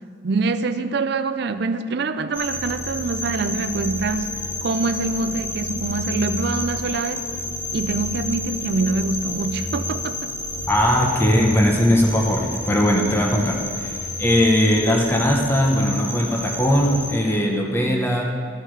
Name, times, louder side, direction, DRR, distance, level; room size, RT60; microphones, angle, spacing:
voice 1, 0.2-7.2 7.7-10.3, right 3 dB, 60° right, 11 dB, 0.4 m, -25 dB
sound 1, 2.3-17.1, left 1 dB, 80° left, 1.6 m, -30 dB
voice 2, 10.7-18.3, equal, 15° left, -1 dB, 0.9 m, -19 dB
13.0 x 9.9 x 3.3 m, 2.2 s
head